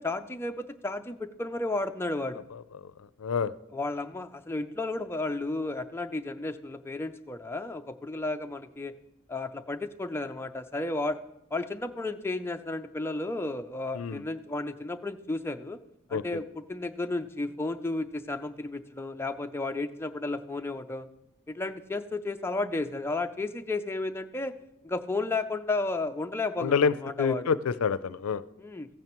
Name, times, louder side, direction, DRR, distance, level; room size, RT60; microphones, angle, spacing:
voice 1, 0.0-2.4 3.7-8.9 9.3-11.2 11.5-15.8 16.1-21.1 21.5-24.5 24.8-27.5 28.6-28.9, left 2 dB, 10° left, 7 dB, 0.4 m, -33 dB
voice 2, 3.2-3.5 13.9-14.2 16.1-16.2 26.6-28.4, left 6 dB, 90° left, 16 dB, 0.4 m, -27 dB
15.5 x 9.1 x 3.0 m, 0.85 s
head